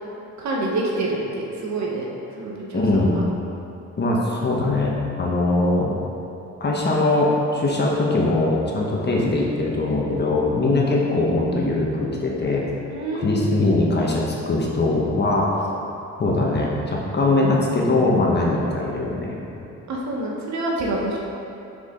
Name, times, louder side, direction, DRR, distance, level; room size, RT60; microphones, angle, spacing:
voice 1, 0.4-2.1 2.4-3.2 12.9-13.5 19.9-21.2, right 2 dB, 65° right, -3 dB, 1.2 m, -27 dB
voice 2, 2.7-3.2 4.0-6.0 6.6-12.6 13.2-15.5 16.2-19.4, left 2 dB, 35° left, -3 dB, 1.2 m, -21 dB
6.2 x 4.9 x 3.7 m, 2.8 s
cardioid pair, 90°, 30 cm